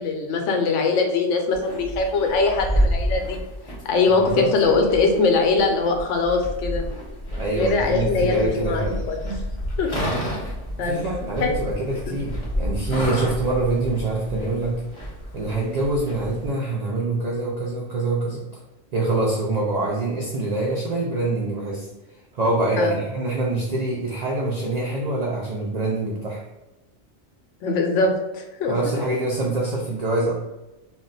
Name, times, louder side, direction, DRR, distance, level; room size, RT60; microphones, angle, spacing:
voice 1, 0.0-3.4 3.8-6.9 7.5-9.4 9.8-9.9 10.8-11.0 11.4-11.5 22.8-22.9 27.6-28.7, left 4 dB, 80° left, 3 dB, 0.9 m, -22 dB
sound 1, 1.5-16.5, equal, 30° left, 0.8 m, -30 dB
voice 2, 4.1-4.5 7.3-9.0 10.8-14.8 15.3-18.6 18.9-21.9 22.3-26.4 28.7-30.3, right 2 dB, 85° right, -3 dB, 0.3 m, -25 dB
2.3 x 2.1 x 3.8 m, 1.0 s
omnidirectional pair, 1.2 m